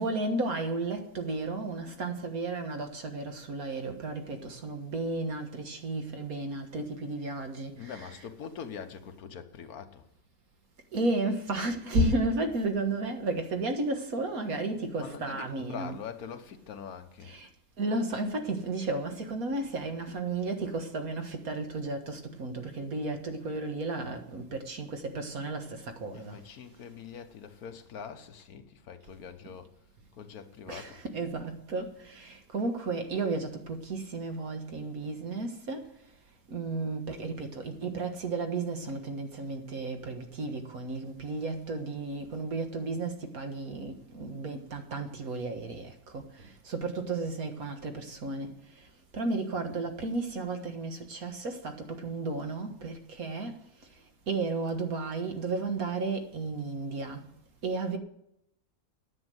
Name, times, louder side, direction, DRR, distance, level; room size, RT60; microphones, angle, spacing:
voice 1, 0.0-8.3 10.9-16.0 17.2-17.5 17.8-26.4 30.7-35.9 36.5-48.9 49.1-53.6 54.3-57.3 57.6-58.0, right 2 dB, 75° right, 2.0 m, -33 dB
voice 2, 7.8-10.1 15.0-17.3 26.1-29.7 30.1-31.0, left 7 dB, 90° left, 1.5 m, -43 dB
9.8 x 8.3 x 7.9 m
omnidirectional pair, 1.5 m